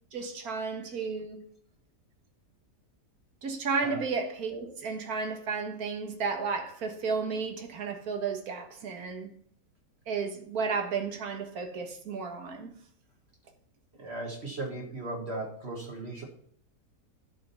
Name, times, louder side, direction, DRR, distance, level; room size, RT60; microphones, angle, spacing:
voice 1, 0.1-1.4 3.4-9.3 10.1-12.7, right 5 dB, 65° right, 1.9 m, -33 dB
voice 2, 14.0-16.3, right 2 dB, 40° right, 1.9 m, -37 dB
11.0 x 5.1 x 5.5 m
omnidirectional pair, 1.7 m